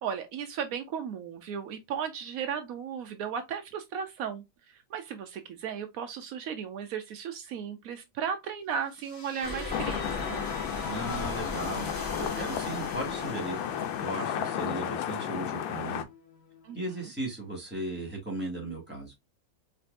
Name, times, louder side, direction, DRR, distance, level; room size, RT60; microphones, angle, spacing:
voice 1, 0.0-10.4 16.6-17.1, right 7 dB, 90° right, 0.7 m, -36 dB
sound 1, 8.8-16.9, left 5 dB, 55° left, 2.7 m, -47 dB
sound 2, 9.4-14.9, left 1 dB, 15° left, 1.0 m, -40 dB
sound 3, 9.7-16.0, left 10 dB, 85° left, 1.4 m, -33 dB
voice 2, 10.9-13.6 14.0-16.0 16.7-19.1, right 1 dB, 5° right, 1.9 m, -36 dB
4.5 x 3.3 x 2.5 m
omnidirectional pair, 2.1 m